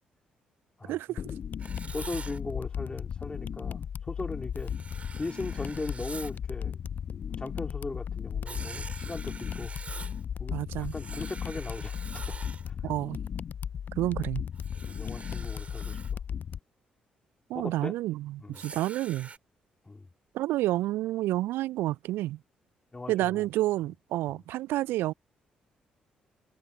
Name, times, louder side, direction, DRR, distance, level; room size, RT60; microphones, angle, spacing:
voice 1, 0.8-1.2 10.5-10.9 12.8-13.2 14.0-14.4 17.5-19.3 20.3-22.4 23.1-25.1, right 16 dB, 65° right, 0.5 m, -29 dB
sound 1, 1.2-16.6, left 8 dB, 50° left, 0.7 m, -36 dB
Writing, 1.6-2.4 4.6-6.4 8.5-10.2 10.8-12.7 14.6-16.1 18.5-19.4, right 4 dB, 35° right, 5.2 m, -45 dB
voice 2, 1.9-4.7 5.2-6.8 7.4-9.7 10.4-11.9 12.3-12.4 12.7-12.8 14.9-16.0 17.5-17.9 18.4-18.6 19.9-20.1 22.9-23.4 24.3-24.4, left 3 dB, 25° left, 4.2 m, -38 dB
figure-of-eight pair, 40°, 4 cm